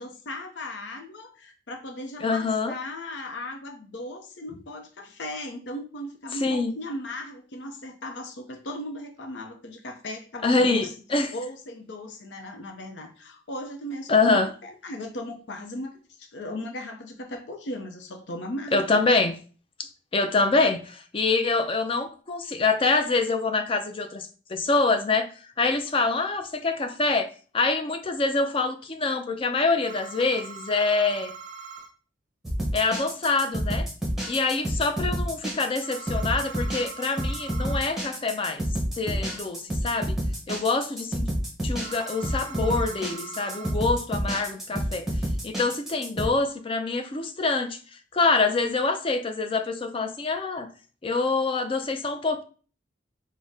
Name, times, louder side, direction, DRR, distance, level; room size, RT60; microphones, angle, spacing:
voice 1, 0.0-10.9 11.3-19.3, left 1 dB, 80° left, 4 dB, 0.6 m, -37 dB
voice 2, 2.2-2.7 6.4-6.7 10.4-11.3 14.1-14.5 18.7-19.4 19.8-25.3 25.6-31.3 32.7-33.9 34.3-38.6 39.0-40.2 40.5-41.2 41.6-45.1 45.4-47.8 48.1-50.7 51.0-52.4, left 3 dB, 30° left, 7 dB, 0.4 m, -25 dB
sound 1, 29.8-31.9 35.8-37.9 41.8-43.7, right 5 dB, 45° right, 0.6 m, -42 dB
sound 2, 32.4-46.2, equal, ahead, 1.0 m, -29 dB
3.9 x 2.1 x 3.5 m, 0.38 s
head